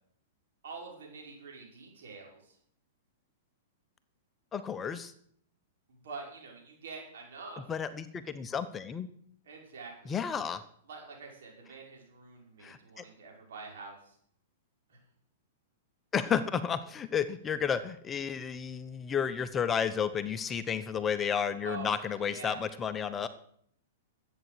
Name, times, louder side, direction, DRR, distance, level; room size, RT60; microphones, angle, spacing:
voice 1, 0.6-2.6 5.9-7.7 9.4-10.2 10.9-14.2 14.9-15.0 21.6-22.6, right 4 dB, 75° right, 0 dB, 5.7 m, -46 dB
voice 2, 4.5-5.1 7.7-9.1 10.1-10.6 12.6-13.0 16.1-23.3, left 7 dB, 20° left, 11 dB, 0.9 m, -32 dB
13.0 x 8.5 x 7.9 m, 0.66 s
hypercardioid pair, 130°, 0 cm